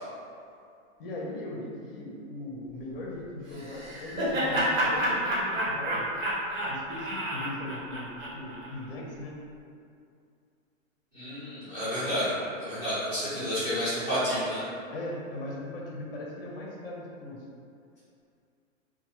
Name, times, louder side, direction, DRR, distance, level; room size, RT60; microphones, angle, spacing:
voice 1, 1.0-6.1 6.7-9.4 13.3-13.5 14.9-17.4, left 1 dB, 45° left, -3 dB, 0.6 m, -39 dB
Laughter, 3.5-8.7, equal, 70° right, 1.1 m, -29 dB
voice 2, 11.1-12.3 12.6-14.6, equal, 10° right, -14 dB, 0.9 m, -30 dB
2.8 x 2.2 x 2.8 m, 2.4 s
hypercardioid pair, 165°, 41 cm